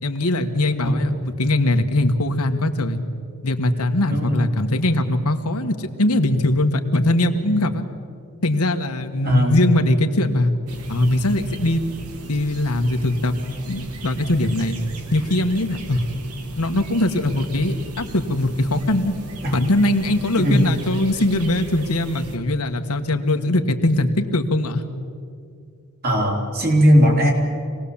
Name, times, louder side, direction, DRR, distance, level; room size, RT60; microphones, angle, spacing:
voice 1, 0.0-3.0 3.4-7.8 8.4-10.5 10.9-11.8 12.3-13.3 13.7-14.8 15.1-16.0 16.6-19.1 19.5-24.8, left 1 dB, 90° left, 6 dB, 1.5 m, -21 dB
voice 2, 0.8-1.1 4.1-4.4 9.2-9.6 19.4-19.5 20.4-20.7 26.0-27.3, equal, 45° right, 0 dB, 4.0 m, -18 dB
sound 1, 10.7-22.4, right 2 dB, 85° right, 2.1 m, -37 dB
26.0 x 19.0 x 7.2 m, 2.3 s
head